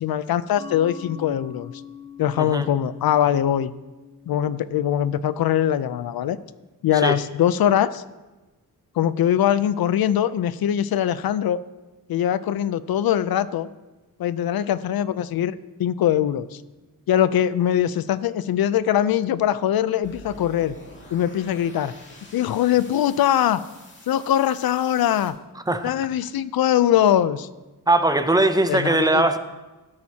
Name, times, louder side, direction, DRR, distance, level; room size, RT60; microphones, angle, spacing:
voice 1, 0.0-1.7 2.2-3.7 4.3-6.4 6.8-8.0 9.0-11.6 12.1-13.7 14.2-16.6 17.1-20.7 21.1-21.9 22.3-23.6 24.1-25.3 25.8-27.5 28.7-29.2, left 10 dB, 90° left, 15 dB, 0.5 m, -22 dB
Mallet percussion, 0.6-5.9, left 7 dB, 65° left, 1.5 m, -43 dB
sound 1, 20.0-25.3, left 1 dB, 30° left, 2.3 m, -47 dB
voice 2, 27.9-29.4, right 2 dB, 10° right, 9 dB, 0.5 m, -20 dB
16.5 x 8.7 x 2.8 m, 1.1 s
wide cardioid pair, 170°, 35 cm